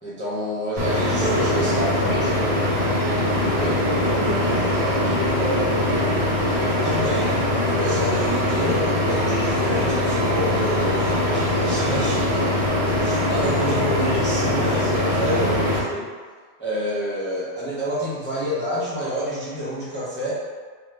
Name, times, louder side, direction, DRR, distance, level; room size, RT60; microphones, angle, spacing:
voice 1, 0.0-2.7 3.5-3.8 6.8-12.4 12.8-16.1 16.6-20.3, equal, 15° left, -9 dB, 0.4 m, -28 dB
sound 1, 0.8-15.8, left 1 dB, 35° right, 0.6 m, -22 dB
voice 2, 1.2-2.3 4.1-6.2, right 1 dB, 80° right, -4 dB, 1.1 m, -30 dB
3.0 x 2.4 x 3.1 m, 1.5 s
omnidirectional pair, 1.2 m